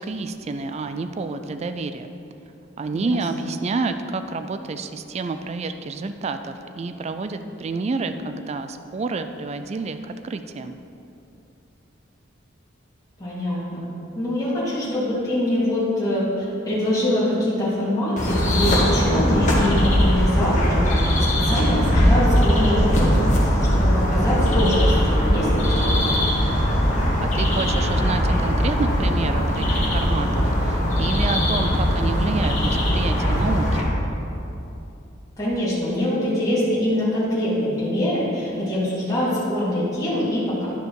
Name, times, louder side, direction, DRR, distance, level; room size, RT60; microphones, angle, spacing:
voice 1, 0.0-2.1 2.8-10.8 27.2-33.9, right 3 dB, 35° right, 9 dB, 0.3 m, -29 dB
voice 2, 13.2-13.8 14.2-23.2 23.7-26.0 35.4-40.7, left 1 dB, 15° left, -10 dB, 2.2 m, -24 dB
sound 1, 18.2-33.8, equal, 35° left, 1.7 m, -20 dB
11.0 x 5.1 x 4.7 m, 2.8 s
head